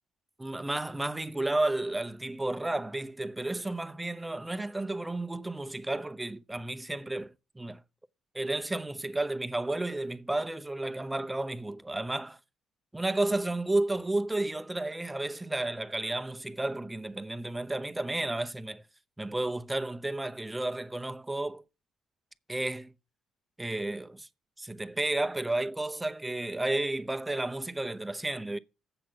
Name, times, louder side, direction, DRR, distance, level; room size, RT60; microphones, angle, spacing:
voice 1, 0.4-7.8 8.3-12.4 12.9-18.8 19.2-21.6 22.5-22.9 23.6-24.3 24.6-28.6, right 2 dB, 15° right, 0.8 m, -32 dB
7.8 x 6.0 x 5.9 m
hypercardioid pair, 50°, 0 cm